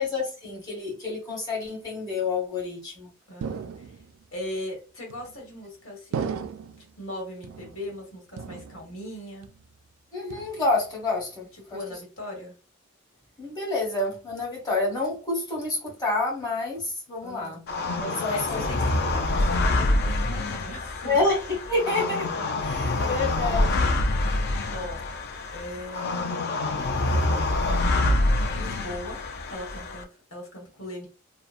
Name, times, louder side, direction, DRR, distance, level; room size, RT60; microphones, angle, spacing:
voice 1, 0.0-3.1 10.1-11.8 13.4-17.6 18.0-18.6 21.1-21.4 21.7-22.3 22.6-23.9, left 2 dB, 20° left, -4 dB, 1.1 m, -28 dB
voice 2, 3.3-4.0 4.3-6.5 7.0-9.5 11.5-12.6 17.2-17.6 18.1-21.2 24.7-25.0 25.5-26.5 26.9-28.0 28.5-31.1, left 1 dB, 85° left, 0 dB, 1.3 m, -39 dB
sound 1, 3.4-4.3 5.1-5.6 6.1-6.9 7.4-8.0 8.4-9.1 9.4-9.9 10.3-10.9, right 6 dB, 85° right, 0.3 m, -36 dB
sound 2, 17.7-30.0, left 2 dB, 50° left, 0.4 m, -26 dB
2.8 x 2.1 x 2.4 m, 0.33 s
head